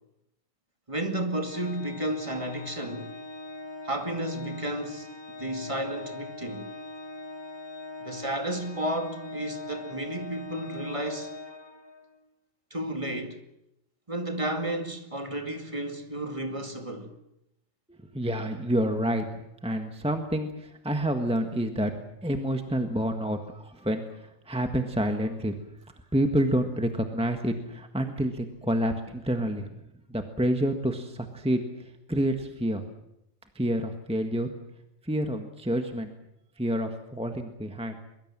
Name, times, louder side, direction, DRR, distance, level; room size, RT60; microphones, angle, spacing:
voice 1, 0.9-3.1 3.8-5.1 5.4-6.7 8.0-11.3 12.7-13.4 14.1-17.2, right 1 dB, 25° right, 2.4 m, -32 dB
Organ, 1.4-12.2, left 2 dB, 20° left, 1.4 m, -42 dB
voice 2, 17.9-19.3 19.6-21.9 22.2-25.5 26.1-29.7 30.1-32.8 33.5-34.5 35.0-36.1 36.6-38.0, right 1 dB, 5° right, 1.6 m, -28 dB
23.0 x 23.0 x 7.6 m
omnidirectional pair, 1.3 m